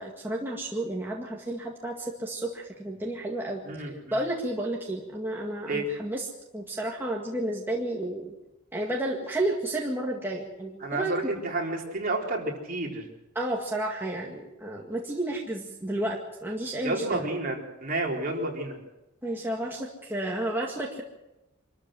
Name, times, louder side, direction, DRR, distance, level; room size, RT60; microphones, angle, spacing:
voice 1, 0.0-3.6 4.1-6.3 6.5-8.3 8.7-11.1 13.4-17.3 19.2-21.0, right 1 dB, 10° right, -2 dB, 2.0 m, -31 dB
voice 2, 3.7-4.1 5.7-5.9 10.8-13.0 16.8-18.8, right 2 dB, 40° right, 0 dB, 3.9 m, -30 dB
25.5 x 13.5 x 7.7 m, 0.97 s
head